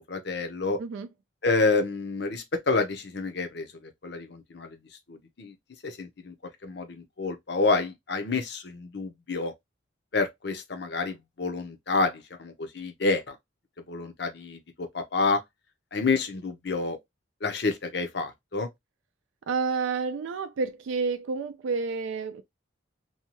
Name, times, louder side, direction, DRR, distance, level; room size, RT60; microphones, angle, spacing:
voice 1, 0.1-0.8 1.4-3.7 4.0-4.8 5.1-5.5 5.8-6.3 6.6-9.5 10.1-13.4 13.9-15.4 15.9-17.0 17.4-18.7, left 3 dB, 55° left, 0.6 m, -28 dB
voice 2, 19.5-22.4, right 4 dB, 75° right, 0.3 m, -29 dB
2.7 x 2.2 x 2.9 m
head